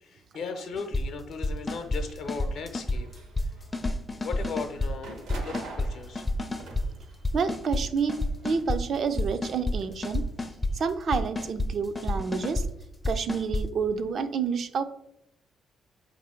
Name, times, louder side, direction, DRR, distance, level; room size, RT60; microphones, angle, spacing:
voice 1, 0.0-3.1 3.4-3.5 4.2-6.3, left 5 dB, 70° left, 6 dB, 0.7 m, -37 dB
sound 1, 0.8-1.0 1.4-2.0 2.3-3.5 3.7-4.9 5.3-5.9 6.2-6.9 7.2-8.8 9.2-9.8 10.0-10.7 11.1-11.7 12.0-12.7 13.0-13.6, left 2 dB, 20° left, 0.4 m, -29 dB
sound 2, 1.8-3.9 4.3-8.8 9.1-10.8, right 2 dB, 85° right, 1.0 m, -47 dB
voice 2, 7.3-10.3 10.7-12.7 13.1-14.8, right 5 dB, 55° right, 9 dB, 0.4 m, -29 dB
4.6 x 2.6 x 4.3 m, 0.80 s
cardioid pair, 90°, 0 cm